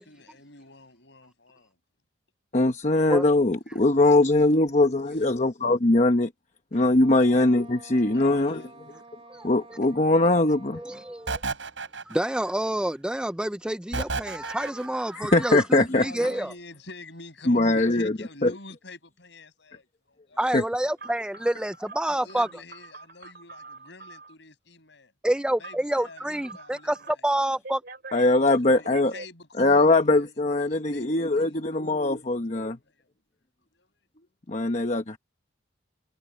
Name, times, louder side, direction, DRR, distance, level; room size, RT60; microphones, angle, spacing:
voice 1, 0.0-1.8 3.7-4.1 4.5-4.7 5.1-5.3 7.1-7.3 8.0-8.7 15.9-20.4 22.1-25.1 25.6-27.6 28.2-32.3 32.6-33.1 33.7-34.0, left 3 dB, 65° left, 7.8 m, -48 dB
voice 2, 2.5-6.3 6.7-8.6 9.4-10.8 15.1-16.0 17.5-18.1 18.4-18.5 20.5-20.6 28.1-29.1 29.6-32.8 34.5-35.2, left 2 dB, 40° left, 1.0 m, -21 dB
Wind instrument woodwind instrument, 6.9-11.5, right 3 dB, 30° right, 4.3 m, -50 dB
voice 3, 10.7-11.4 12.1-16.5 20.4-22.5 25.2-27.8, right 1 dB, 5° right, 0.4 m, -28 dB
sound 1, 11.3-12.5 13.9-15.0, right 3 dB, 85° right, 4.9 m, -32 dB
Telephone, 21.0-24.3 25.6-27.1 27.6-29.3, right 3 dB, 55° right, 4.3 m, -44 dB
head